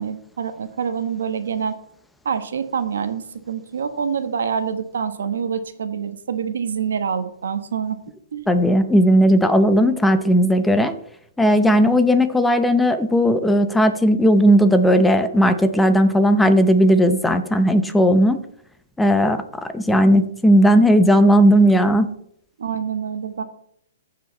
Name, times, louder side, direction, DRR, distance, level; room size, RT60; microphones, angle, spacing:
voice 1, 0.0-1.8 2.2-8.0 8.3-8.5 22.6-23.4, right 7 dB, 75° right, 9 dB, 1.2 m, -26 dB
voice 2, 8.5-10.9 11.4-18.4 19.0-22.1, equal, 5° left, 9 dB, 0.7 m, -16 dB
15.0 x 5.0 x 4.0 m, 0.69 s
hypercardioid pair, 140°, 0 cm